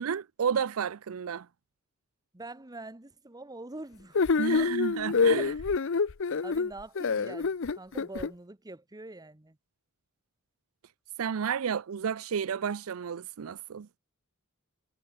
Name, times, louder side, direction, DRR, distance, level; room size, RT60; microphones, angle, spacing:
voice 1, 0.0-1.5 4.4-5.5 11.2-13.9, right 7 dB, 75° right, 0.5 m, -31 dB
voice 2, 2.3-4.7 5.4-5.6 6.4-9.6, right 2 dB, 20° right, 1.0 m, -44 dB
sound 1, 4.1-8.3, left 4 dB, 60° left, 0.6 m, -26 dB
head